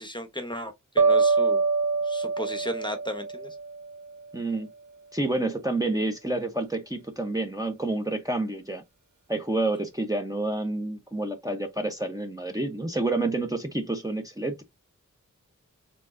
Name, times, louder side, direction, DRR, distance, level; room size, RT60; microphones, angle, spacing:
voice 1, 0.0-1.6 2.0-3.6, equal, 15° left, 1.0 m, -35 dB
sound 1, 1.0-4.1, right 4 dB, 65° right, 0.5 m, -24 dB
voice 2, 4.3-4.7 5.1-8.8 9.3-14.6, right 2 dB, 10° right, 0.8 m, -29 dB
4.4 x 3.7 x 2.6 m
wide cardioid pair, 60°, 32 cm